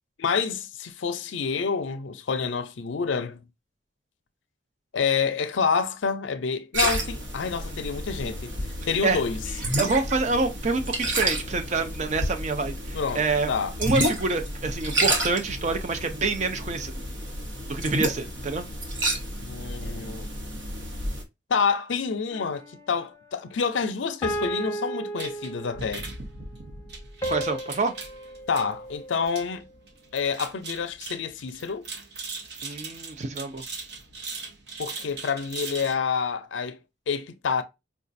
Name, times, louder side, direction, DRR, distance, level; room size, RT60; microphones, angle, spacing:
voice 1, 0.2-3.4 4.9-8.6 8.8-9.4 12.9-13.7 19.4-20.3 21.5-26.1 28.5-29.7 30.1-31.9 34.8-36.8 37.1-37.6, left 5 dB, 80° left, 0.5 m, -28 dB
sound 1, 6.7-21.2, right 1 dB, 80° right, 1.1 m, -30 dB
voice 2, 9.8-13.5 13.8-16.9 17.7-18.7 27.3-27.9 32.6-33.6, right 3 dB, 40° right, 0.5 m, -27 dB
sound 2, 22.3-23.0 24.2-26.0 27.2-29.6, right 1 dB, 15° left, 0.6 m, -34 dB
sound 3, 25.2-36.0, right 4 dB, 60° right, 0.8 m, -40 dB
4.9 x 2.3 x 2.6 m
head